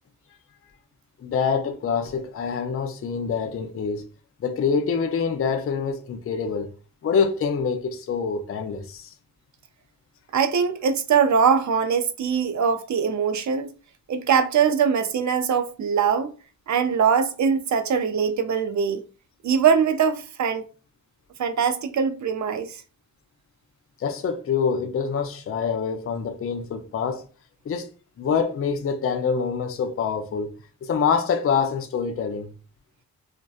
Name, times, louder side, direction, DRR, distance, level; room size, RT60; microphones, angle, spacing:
voice 1, 1.2-4.1 4.4-6.7 7.0-9.1 24.0-27.2 27.7-27.9 28.2-30.5 30.8-32.5, left 6 dB, 40° left, 0.4 m, -25 dB
voice 2, 10.3-13.7 14.1-16.3 16.7-19.0 19.4-20.6 21.4-22.8, right 6 dB, 55° right, 0.4 m, -22 dB
2.6 x 2.1 x 2.3 m
cardioid pair, 55°, 36 cm